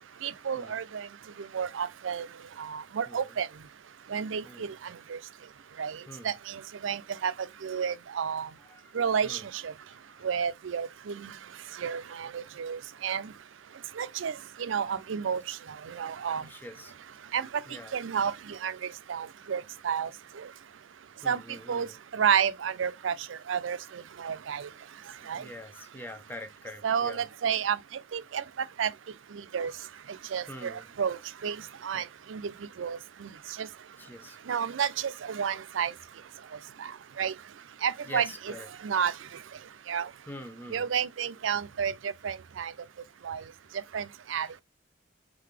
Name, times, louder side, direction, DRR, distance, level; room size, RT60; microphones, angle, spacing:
voice 1, 0.2-1.1 1.5-2.3 2.6-3.5 4.1-5.2 5.8-7.3 7.6-8.5 8.9-9.7 10.2-11.3 11.8-13.3 14.0-15.6 15.8-16.5 17.3-17.5 17.9-20.1 20.4-20.5 21.3-21.4 21.7-21.9 22.1-24.7 25.3-25.5 26.8-28.4 28.8-28.9 29.5-29.7 30.3-31.6 31.8-32.4 32.8-33.3 33.6-33.7 34.5-35.9 36.8-36.9 37.2-37.3 37.8-38.5 38.8-39.1 39.9-40.1 40.7-42.7 43.2-43.4 43.9-44.5, right 7 dB, 80° right, 0.5 m, -31 dB
voice 2, 4.4-4.8 6.1-6.3 8.7-9.0 9.2-9.4 9.9-10.3 16.3-16.9 17.7-17.9 21.2-21.9 25.3-27.2 30.5-30.9 31.9-32.0 34.0-34.4 38.1-38.7 40.3-40.9, left 1 dB, 10° left, 0.6 m, -44 dB
3.9 x 3.3 x 3.3 m
head